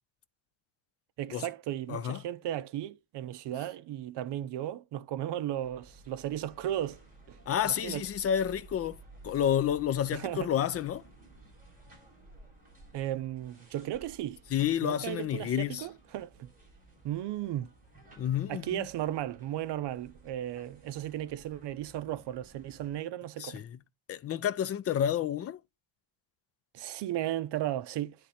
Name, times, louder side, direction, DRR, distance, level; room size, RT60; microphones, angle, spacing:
voice 1, 1.2-7.0 7.3-7.4 7.6-8.0 10.1-10.5 12.9-14.4 14.8-16.5 17.0-17.7 18.5-23.6 26.7-28.2, right 12 dB, 65° right, 0.7 m, -35 dB
voice 2, 1.9-2.2 7.5-9.0 9.2-11.0 14.5-15.8 18.2-18.9 23.4-23.8 24.1-25.6, left 9 dB, 35° left, 0.4 m, -30 dB
sound 1, 5.5-23.0, right 2 dB, 20° right, 4.9 m, -55 dB
9.7 x 3.3 x 4.2 m
cardioid pair, 155°, 45 cm